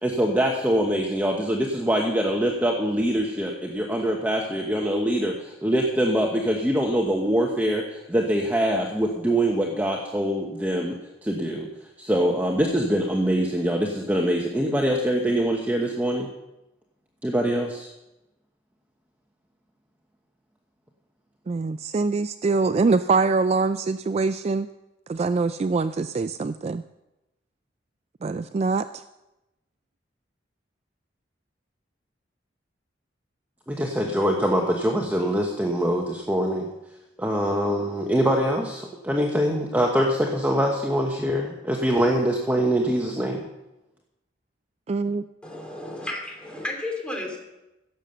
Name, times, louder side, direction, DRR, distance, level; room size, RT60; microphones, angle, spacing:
voice 1, 0.0-11.7 12.0-16.3 17.2-17.9 33.7-36.7 37.2-43.4, equal, 10° right, 0 dB, 1.1 m, -24 dB
voice 2, 21.5-24.7 25.1-26.8 28.2-29.0 44.9-45.2, right 4 dB, 35° right, 11 dB, 0.3 m, -24 dB
voice 3, 45.4-47.4, left 1 dB, 5° left, 1 dB, 3.0 m, -33 dB
16.0 x 7.2 x 6.8 m, 0.96 s
head